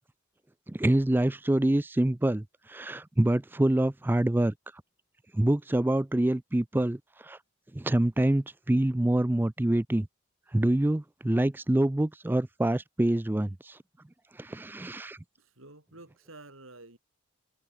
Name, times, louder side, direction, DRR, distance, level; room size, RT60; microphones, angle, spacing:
voice 1, 0.7-4.5 5.3-7.4 7.7-10.1 10.5-13.8 14.3-15.2, right 1 dB, 10° right, 0.3 m, -26 dB
voice 2, 15.4-17.0, right 2 dB, 85° right, 5.8 m, -50 dB
head